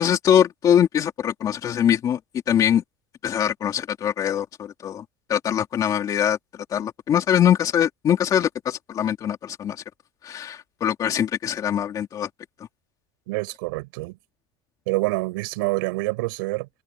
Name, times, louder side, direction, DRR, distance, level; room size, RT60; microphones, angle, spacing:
voice 1, 0.0-2.2 2.5-2.8 3.2-5.0 5.3-6.4 6.7-9.8 10.2-12.3, left 9 dB, 30° left, 2.7 m, -22 dB
voice 2, 13.3-14.2 14.9-16.7, right 23 dB, 80° right, 5.9 m, -26 dB
supercardioid pair, 145°, 11 cm